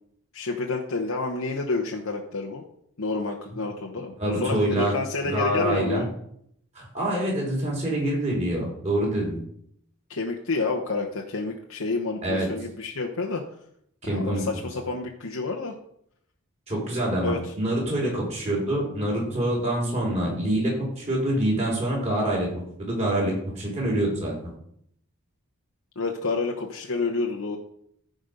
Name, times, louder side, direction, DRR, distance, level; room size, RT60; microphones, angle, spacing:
voice 1, 0.3-2.6 3.0-6.1 10.1-13.4 14.1-15.7 17.2-17.4 26.0-27.6, left 3 dB, 85° left, 1 dB, 1.1 m, -29 dB
voice 2, 4.2-4.9 5.2-6.0 6.8-9.4 12.2-12.5 14.0-14.4 16.7-24.3, right 1 dB, 30° right, -3 dB, 4.2 m, -26 dB
14.5 x 5.2 x 5.3 m, 0.70 s
head